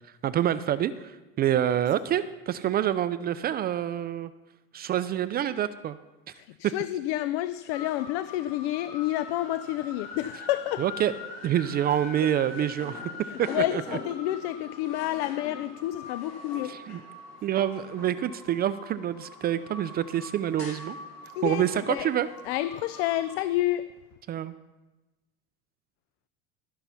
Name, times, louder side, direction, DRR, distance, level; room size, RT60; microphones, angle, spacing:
voice 1, 0.2-4.3 4.7-6.0 6.6-6.7 10.8-11.1 11.4-13.0 13.4-14.0 16.6-17.0 17.4-21.0 21.4-22.3 24.3-24.5, right 11 dB, 30° right, 14 dB, 0.4 m, -27 dB
voice 2, 6.4-10.8 13.3-16.7 21.4-22.1 22.5-23.8, left 15 dB, 80° left, 14 dB, 0.5 m, -29 dB
sound 1, 7.7-23.4, left 3 dB, 65° left, 4.0 m, -43 dB
13.5 x 5.6 x 5.7 m, 1.1 s
supercardioid pair, 125°, 31 cm